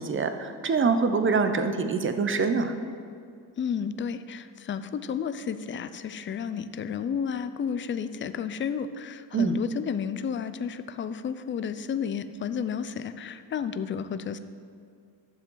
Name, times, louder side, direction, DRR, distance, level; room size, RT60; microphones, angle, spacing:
voice 1, 0.0-2.8 9.3-9.6, right 4 dB, 30° right, 8 dB, 0.7 m, -25 dB
voice 2, 3.6-14.4, left 7 dB, 30° left, 12 dB, 0.4 m, -32 dB
11.5 x 7.4 x 3.9 m, 2.3 s
cardioid pair, 100°, 41 cm